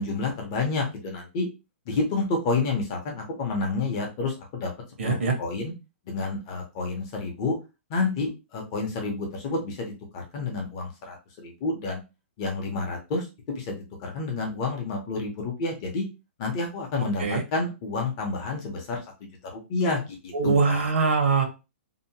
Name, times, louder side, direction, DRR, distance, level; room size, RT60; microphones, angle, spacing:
voice 1, 0.0-1.5 1.9-4.7 5.0-5.7 6.1-7.6 7.9-12.0 12.4-16.0 16.4-19.0 19.4-20.9, left 3 dB, 25° left, 1 dB, 0.7 m, -29 dB
voice 2, 5.0-5.3 17.2-17.4 20.3-21.4, right 4 dB, 80° right, 4 dB, 1.0 m, -22 dB
2.7 x 2.1 x 2.7 m, 0.27 s
hypercardioid pair, 175°, 7 cm